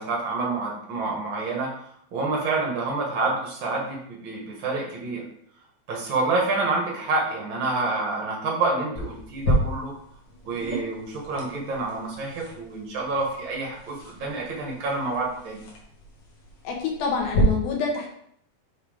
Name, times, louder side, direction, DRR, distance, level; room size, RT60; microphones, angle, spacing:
voice 1, 0.0-1.7 2.1-5.2 5.9-9.9 10.5-15.6, right 3 dB, 70° right, -2 dB, 1.1 m, -28 dB
sound 1, 9.0-17.4, left 1 dB, 60° left, 2.5 m, -33 dB
voice 2, 16.6-18.1, left 5 dB, 75° left, 0 dB, 3.0 m, -27 dB
7.4 x 3.5 x 4.9 m, 0.69 s
omnidirectional pair, 4.4 m